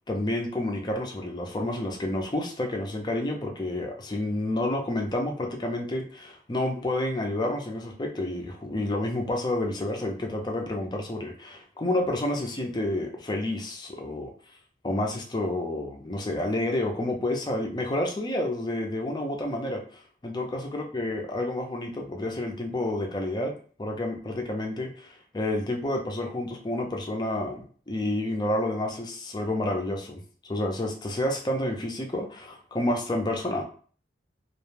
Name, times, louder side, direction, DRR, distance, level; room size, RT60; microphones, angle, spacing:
voice 1, 0.1-14.3 14.8-23.5 23.8-30.2 30.5-33.6, left 1 dB, 25° left, 1 dB, 0.4 m, -29 dB
2.3 x 2.1 x 3.2 m, 0.43 s
head